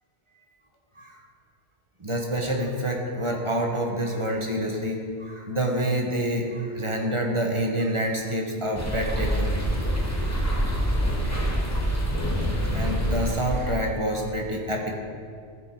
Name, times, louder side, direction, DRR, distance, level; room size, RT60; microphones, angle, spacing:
voice 1, 2.0-9.5 10.2-10.4 11.2-11.6 12.7-15.0, right 1 dB, 30° right, 0 dB, 0.9 m, -27 dB
sound 1, 8.7-13.9, equal, 15° left, 0.9 m, -26 dB
13.5 x 4.6 x 4.3 m, 2.3 s
omnidirectional pair, 1.2 m